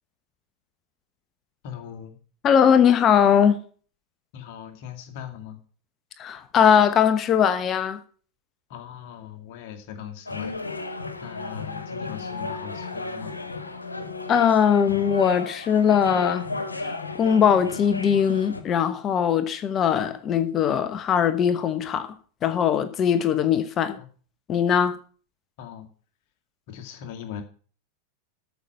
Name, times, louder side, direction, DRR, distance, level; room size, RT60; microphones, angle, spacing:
voice 1, 1.6-2.2 4.3-5.6 8.7-13.4 24.0-24.1 25.6-25.9 26.7-27.4, left 9 dB, 50° left, 2.3 m, -40 dB
voice 2, 2.4-3.6 6.2-8.0 14.3-16.5 16.8-22.1 22.4-24.0 24.5-25.0, left 8 dB, 30° left, 1.1 m, -20 dB
sound 1, 10.3-18.6, left 3 dB, 80° left, 1.6 m, -34 dB
13.5 x 5.9 x 8.0 m
figure-of-eight pair, 90°, 0 cm